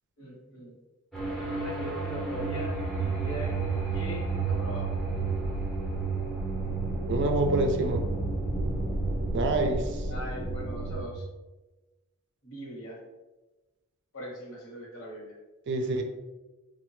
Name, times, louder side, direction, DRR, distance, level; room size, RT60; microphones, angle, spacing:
voice 1, 0.2-0.7 1.6-3.5 3.9-4.9 10.1-11.2 12.4-13.0 14.1-15.3, equal, 60° left, -3 dB, 1.0 m, -40 dB
sound 1, 1.1-11.0, right 3 dB, ahead, 0.6 m, -31 dB
voice 2, 7.1-8.1 9.3-10.0 15.7-16.0, right 2 dB, 50° right, 5 dB, 0.4 m, -27 dB
3.2 x 2.0 x 3.1 m, 1.1 s
head